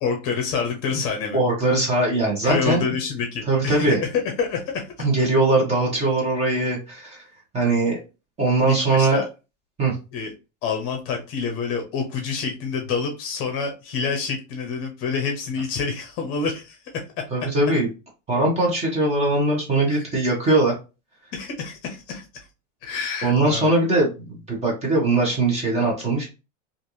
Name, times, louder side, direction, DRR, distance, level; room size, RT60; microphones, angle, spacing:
voice 1, 0.0-1.4 2.4-4.9 8.7-9.3 10.1-10.3 10.6-17.0 19.9-20.1 21.3-22.5 22.8-23.7, left 5 dB, 35° left, 2 dB, 0.8 m, -27 dB
voice 2, 1.3-2.8 3.5-4.0 5.0-7.3 7.5-8.0 8.4-9.2 9.8-10.0 17.3-17.9 18.3-20.7 23.2-26.3, right 2 dB, 15° right, -2 dB, 1.1 m, -21 dB
3.2 x 2.5 x 2.7 m, 0.29 s
supercardioid pair, 150°, 38 cm